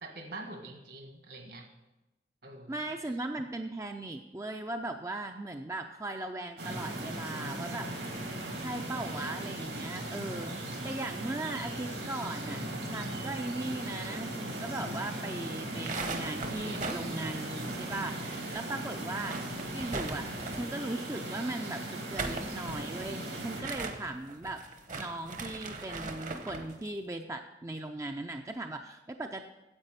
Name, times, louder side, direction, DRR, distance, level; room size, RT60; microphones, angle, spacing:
voice 1, 0.0-1.7 2.4-2.8, right 2 dB, 60° right, 5 dB, 1.7 m, -45 dB
voice 2, 2.7-7.9 8.6-10.6 10.8-19.4 19.7-21.8 22.1-24.6 25.0-29.5, right 2 dB, 15° right, 5 dB, 0.4 m, -38 dB
sound 1, 6.6-23.6, right 1 dB, 80° right, 3.0 m, -38 dB
sound 2, 15.7-18.3 18.5-18.6 19.0-20.8 21.9-26.7, right 3 dB, 45° right, 1.0 m, -40 dB
9.8 x 8.2 x 6.8 m, 1.0 s
head